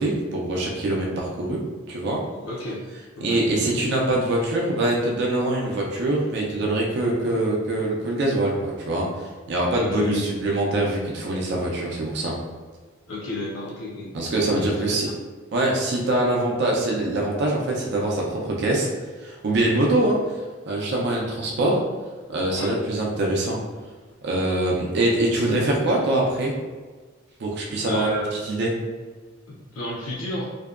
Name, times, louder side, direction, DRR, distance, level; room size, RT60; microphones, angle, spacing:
voice 1, 0.0-1.6 1.9-2.2 3.2-12.3 14.1-15.1 15.5-18.9 19.2-20.2 20.7-21.8 22.3-23.6 24.2-26.5 27.4-28.1 28.4-28.7, right 1 dB, 55° right, -2 dB, 0.4 m, -23 dB
voice 2, 2.4-2.8 3.2-3.4 9.8-10.3 13.1-14.2 14.6-15.0 22.6-22.8 27.8-28.4 29.5-30.5, left 2 dB, 80° left, -5 dB, 0.5 m, -31 dB
2.6 x 2.2 x 2.3 m, 1.4 s
head